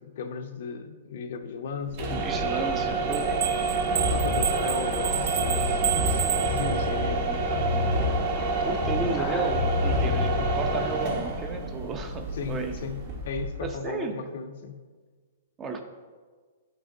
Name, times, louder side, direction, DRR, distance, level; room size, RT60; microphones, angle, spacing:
voice 1, 0.0-2.2 3.2-3.4 4.1-8.1 10.3-10.5 12.3-14.8, left 5 dB, 60° left, 6 dB, 0.6 m, -36 dB
sound 1, 1.9-13.8, right 3 dB, 45° right, 1.0 m, -28 dB
voice 2, 2.1-3.4 8.6-12.7 13.6-14.2 15.6-15.8, right 4 dB, 20° right, 5 dB, 0.6 m, -33 dB
sound 2, 3.1-7.1, right 9 dB, 70° right, 0.4 m, -31 dB
sound 3, 4.1-11.0, left 4 dB, 25° left, 0.7 m, -31 dB
10.5 x 6.2 x 2.6 m, 1.5 s
hypercardioid pair, 150°, 0 cm